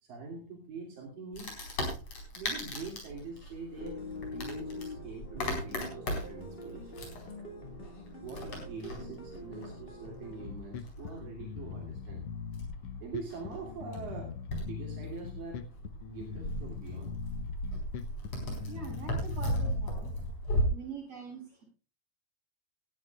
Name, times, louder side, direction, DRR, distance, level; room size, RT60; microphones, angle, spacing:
voice 1, 0.0-1.6 2.3-4.0 4.3-6.9 8.2-12.2 13.0-15.7 16.1-17.2, right 4 dB, 80° right, -2 dB, 4.6 m, -44 dB
Wood, 1.3-20.6, equal, 50° left, 5.5 m, -38 dB
sound 1, 3.8-10.5, left 2 dB, 20° left, 1.9 m, -44 dB
Bass guitar, 10.3-19.9, left 7 dB, 70° left, 1.5 m, -42 dB
voice 2, 18.7-20.1 20.7-21.6, right 5 dB, 45° right, -2 dB, 8.4 m, -44 dB
19.0 x 13.0 x 2.4 m, 0.33 s
omnidirectional pair, 3.9 m